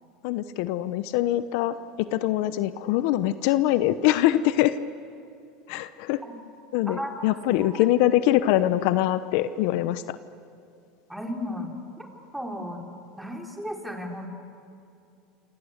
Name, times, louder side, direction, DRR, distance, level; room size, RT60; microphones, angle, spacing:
voice 1, 0.2-4.8 5.7-6.2 6.7-10.2, left 14 dB, 70° left, 13 dB, 0.9 m, -23 dB
voice 2, 11.1-11.7 12.0-12.8 13.2-14.3, equal, 5° right, 2 dB, 4.2 m, -35 dB
28.5 x 25.5 x 8.2 m, 2.6 s
supercardioid pair, 110°, 0 cm